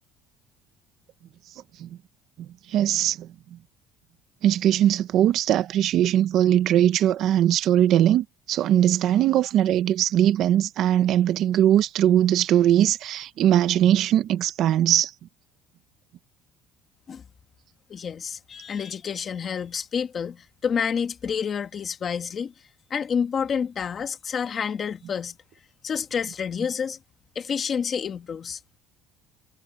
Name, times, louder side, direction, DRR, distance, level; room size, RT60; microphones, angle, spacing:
voice 1, 2.7-3.3 4.4-15.1, right 11 dB, 45° right, 0.9 m, -20 dB
voice 2, 17.9-22.5 22.9-25.3 25.8-27.0 27.4-28.6, left 7 dB, 30° left, 1.7 m, -29 dB
cardioid pair, 170°, 0 cm